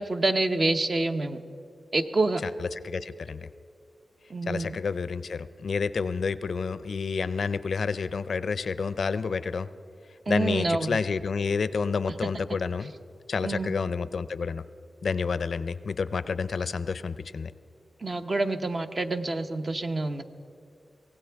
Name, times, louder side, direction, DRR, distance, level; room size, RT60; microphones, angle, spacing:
voice 1, 0.0-1.4 1.9-2.4 4.3-4.8 10.3-11.0 13.4-13.7 18.0-20.2, right 2 dB, 40° right, 7 dB, 0.8 m, -27 dB
voice 2, 2.4-3.5 4.5-9.7 10.3-12.9 13.3-14.6 15.0-17.5, left 5 dB, 70° left, 14 dB, 0.4 m, -29 dB
24.0 x 17.0 x 3.5 m, 2.5 s
wide cardioid pair, 95°, 0 cm